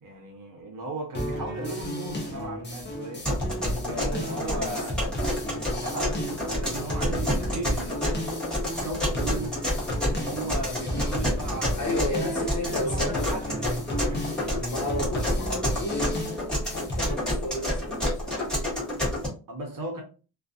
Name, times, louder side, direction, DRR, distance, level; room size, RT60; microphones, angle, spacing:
voice 1, 0.0-3.3 3.7-5.0 5.8-8.3 8.7-9.6 10.0-12.0 12.3-14.3 19.5-20.0, right 2 dB, 50° right, 0.9 m, -37 dB
sound 1, 1.1-17.1, equal, 25° left, 0.6 m, -33 dB
sound 2, 3.3-19.3, left 1 dB, ahead, 1.2 m, -29 dB
voice 2, 3.8-4.8 11.8-13.6 14.7-16.1 16.6-18.4, left 1 dB, 45° left, 1.4 m, -33 dB
2.5 x 2.4 x 2.4 m
wide cardioid pair, 155°, 42 cm